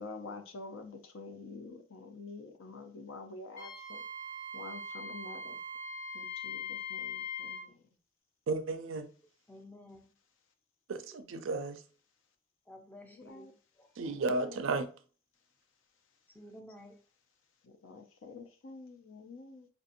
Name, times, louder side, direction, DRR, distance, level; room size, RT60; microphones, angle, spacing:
voice 1, 0.0-4.0 4.5-5.6 6.1-7.8 13.0-13.5 14.0-14.6 17.6-19.7, left 3 dB, 65° left, 0.6 m, -48 dB
Wind instrument woodwind instrument, 3.6-7.7, left 3 dB, 45° left, 0.9 m, -41 dB
voice 2, 8.5-9.1 10.9-11.8 14.0-14.9, right 3 dB, 65° right, 0.4 m, -33 dB
voice 3, 9.5-10.0 12.7-13.9 16.3-17.0, left 1 dB, 10° left, 0.4 m, -52 dB
4.5 x 2.7 x 2.5 m
head